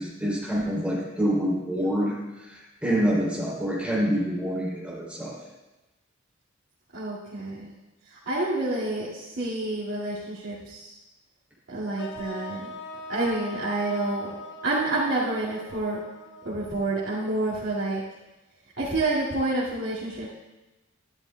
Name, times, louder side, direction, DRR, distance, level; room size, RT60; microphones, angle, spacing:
voice 1, 0.0-5.4, equal, 5° right, -6 dB, 3.2 m, -27 dB
voice 2, 6.9-7.7 8.0-10.9 11.7-12.7 13.1-14.4 14.6-16.0 16.4-18.0 18.8-20.3, right 2 dB, 65° right, -9 dB, 2.2 m, -28 dB
sound 1, 12.0-18.0, left 1 dB, 60° left, 0.9 m, -42 dB
12.5 x 12.0 x 2.3 m, 1.1 s
head